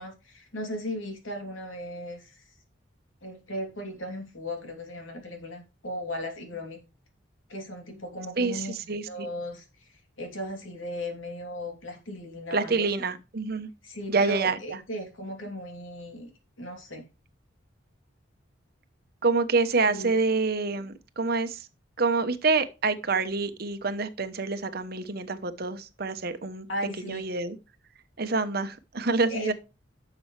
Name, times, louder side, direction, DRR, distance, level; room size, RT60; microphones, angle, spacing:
voice 1, 0.0-2.4 3.2-6.8 7.5-12.9 13.8-16.3 16.6-17.0 19.9-20.1 26.7-27.3 29.3-29.5, equal, 90° left, 3.1 m, -36 dB
voice 2, 8.4-9.3 12.5-13.7 14.1-14.6 19.2-21.7 22.0-26.7 27.0-27.6 28.2-29.5, right 4 dB, 50° right, 1.0 m, -27 dB
11.5 x 7.0 x 3.3 m
head